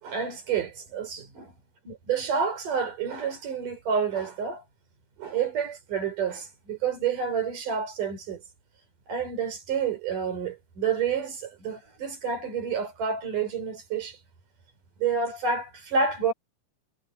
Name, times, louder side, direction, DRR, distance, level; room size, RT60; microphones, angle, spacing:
voice 1, 0.0-1.5 1.8-4.6 5.2-8.4 9.1-14.2 15.0-16.3, right 6 dB, 90° right, 6.2 m, -29 dB
omnidirectional pair, 3.6 m